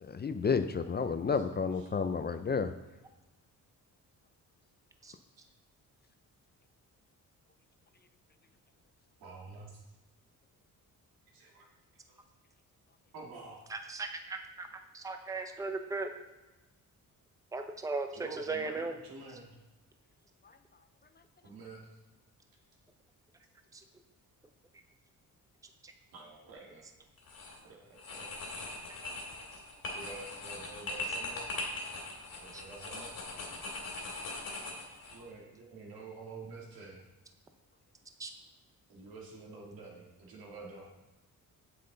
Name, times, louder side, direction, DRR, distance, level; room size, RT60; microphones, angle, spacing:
voice 1, 0.0-2.7, left 5 dB, 30° left, 10 dB, 0.4 m, -31 dB
voice 2, 9.2-9.8 11.3-11.7 12.1-12.2 13.1-13.6 15.6-15.7 18.1-19.6 21.4-21.9 26.1-26.8 27.6-28.3 29.9-31.5 32.4-33.1 35.1-37.0 38.9-40.9, right 3 dB, 90° right, -1 dB, 2.3 m, -48 dB
voice 3, 13.7-14.7 14.9-16.1 17.5-18.9 23.7-23.8 25.8-25.9 32.5-32.6 38.2-38.3, right 3 dB, 10° right, 6 dB, 0.6 m, -37 dB
sound 1, 27.2-27.6 28.0-35.2, left 2 dB, 70° left, 2.4 m, -40 dB
7.8 x 7.6 x 3.9 m, 1.1 s
cardioid pair, 115°, 35 cm